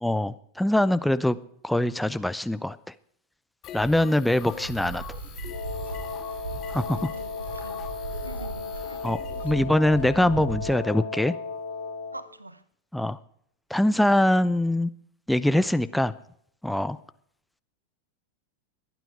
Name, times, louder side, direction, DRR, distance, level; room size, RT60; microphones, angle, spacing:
voice 1, 0.0-1.4 1.6-2.8 3.7-5.0 6.7-7.0 9.0-9.2 9.4-11.3 12.9-13.2 13.7-14.9 15.3-16.1 16.6-17.0, left 1 dB, 5° left, 0.6 m, -23 dB
sound 1, 3.6-9.5, left 10 dB, 30° left, 1.9 m, -43 dB
sound 2, 4.5-10.8, right 4 dB, 65° right, 5.7 m, -38 dB
Wind instrument woodwind instrument, 5.5-12.3, left 4 dB, 75° left, 5.1 m, -35 dB
voice 2, 6.7-7.9 8.2-9.1 12.1-12.6, right 1 dB, 85° right, 0.9 m, -45 dB
23.5 x 9.2 x 4.9 m
figure-of-eight pair, 90°, 0 cm